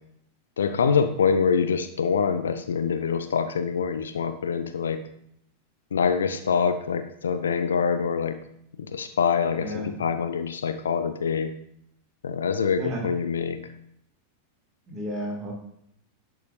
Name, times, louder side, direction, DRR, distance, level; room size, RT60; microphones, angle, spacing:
voice 1, 0.6-5.0 5.9-8.4 8.8-11.5 12.2-13.7, left 6 dB, 65° left, 10 dB, 0.4 m, -25 dB
voice 2, 9.6-9.9 12.8-13.0 14.9-15.5, equal, 20° right, -2 dB, 2.3 m, -32 dB
10.5 x 4.9 x 2.7 m, 0.71 s
figure-of-eight pair, 90°, 0 cm